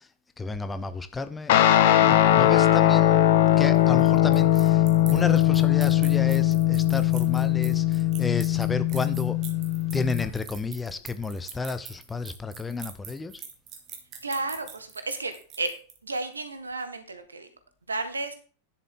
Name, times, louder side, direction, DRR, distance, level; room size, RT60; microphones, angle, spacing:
voice 1, 0.4-1.5 2.0-3.2 3.6-4.8 5.1-9.4 9.9-13.3, left 4 dB, 15° left, 0.8 m, -31 dB
Guitar, 1.5-10.3, left 12 dB, 55° left, 1.0 m, -20 dB
sound 1, 3.6-16.2, right 8 dB, 35° right, 2.2 m, -44 dB
voice 2, 14.2-15.3 15.6-15.7 16.0-17.5 17.9-18.3, right 3 dB, 75° right, 1.6 m, -32 dB
10.5 x 7.5 x 3.8 m
figure-of-eight pair, 90°, 0 cm